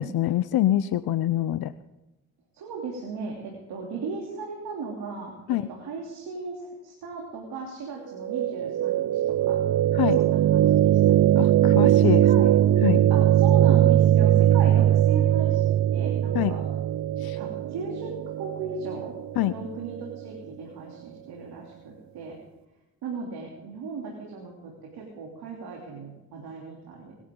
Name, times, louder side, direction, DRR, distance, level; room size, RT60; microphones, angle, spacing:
voice 1, 0.0-1.7 5.5-5.7 9.9-10.2 11.4-12.2 12.8-13.0 16.3-16.6 17.2-17.4 19.4-19.5, left 13 dB, 70° left, 14 dB, 0.6 m, -25 dB
voice 2, 2.5-9.6 10.2-11.2 11.8-12.5 13.1-16.6 17.3-19.1 19.5-22.4 23.0-27.1, right 4 dB, 80° right, -1 dB, 3.2 m, -36 dB
sound 1, 8.2-20.2, right 11 dB, 50° right, 0.5 m, -21 dB
24.0 x 11.0 x 3.8 m, 1.0 s
supercardioid pair, 65°, 38 cm